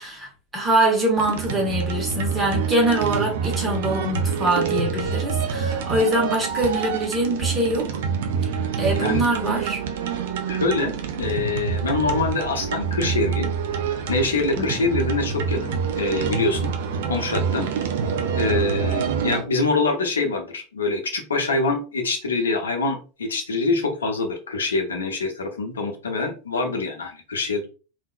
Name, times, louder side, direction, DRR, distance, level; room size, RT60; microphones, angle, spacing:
voice 1, 0.0-7.9 8.8-9.8 14.6-14.8, right 1 dB, 15° right, -1 dB, 1.5 m, -23 dB
sound 1, 1.2-19.4, right 6 dB, 60° right, 0.5 m, -26 dB
voice 2, 10.5-13.5 14.1-16.7 17.0-17.7 18.3-27.7, left 3 dB, 70° left, 3 dB, 0.8 m, -25 dB
3.6 x 2.7 x 2.4 m, 0.35 s
figure-of-eight pair, 85°, 0 cm